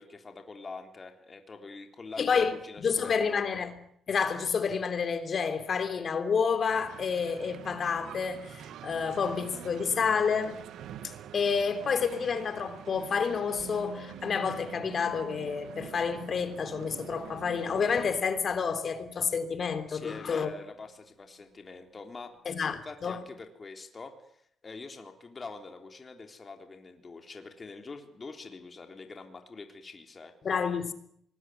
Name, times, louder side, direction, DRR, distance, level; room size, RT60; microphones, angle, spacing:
voice 1, 0.0-3.4 19.9-22.3 22.6-30.3, left 4 dB, 30° left, 3.7 m, -45 dB
voice 2, 2.2-2.6 2.8-3.8 4.1-10.6 11.0-20.5 22.4-23.2 30.4-30.9, left 6 dB, 50° left, 3.3 m, -29 dB
sound 1, 6.7-18.1, right 10 dB, 75° right, 1.8 m, -46 dB
Musical instrument, 13.6-21.5 21.8-21.9, right 3 dB, 60° right, 4.0 m, -52 dB
24.5 x 20.5 x 9.4 m
cardioid pair, 90°, 0 cm